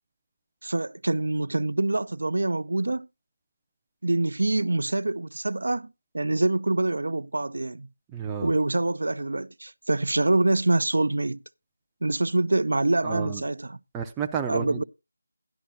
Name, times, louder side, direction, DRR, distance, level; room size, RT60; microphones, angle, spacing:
voice 1, 0.6-3.1 4.0-7.9 8.4-11.4 12.0-13.8 14.5-14.8, right 2 dB, 75° right, 0.5 m, -25 dB
voice 2, 8.1-8.5 13.0-13.4 13.9-14.8, right 7 dB, 10° right, 0.5 m, -31 dB
12.0 x 11.5 x 2.7 m
figure-of-eight pair, 170°, 0 cm